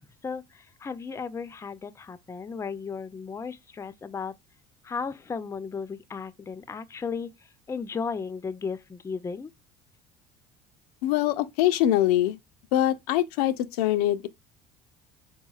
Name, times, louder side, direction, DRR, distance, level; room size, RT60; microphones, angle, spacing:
voice 1, 0.2-4.4 4.8-7.3 7.7-9.5, left 5 dB, 15° left, 0.3 m, -35 dB
voice 2, 11.0-12.4 12.7-14.3, left 13 dB, 85° left, 0.4 m, -23 dB
3.8 x 3.0 x 2.3 m
supercardioid pair, 80°, 19 cm